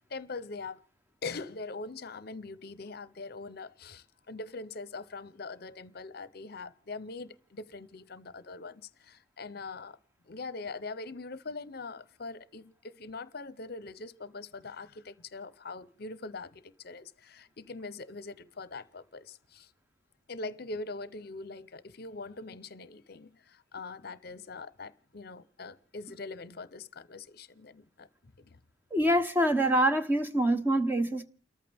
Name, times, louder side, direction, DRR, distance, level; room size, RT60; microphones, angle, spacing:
voice 1, 0.1-0.8 1.2-10.0 10.3-19.7 20.3-28.1 28.4-28.6, left 3 dB, 55° left, 0.7 m, -42 dB
voice 2, 28.9-31.2, right 1 dB, 10° right, 1.0 m, -25 dB
29.5 x 14.0 x 3.5 m
head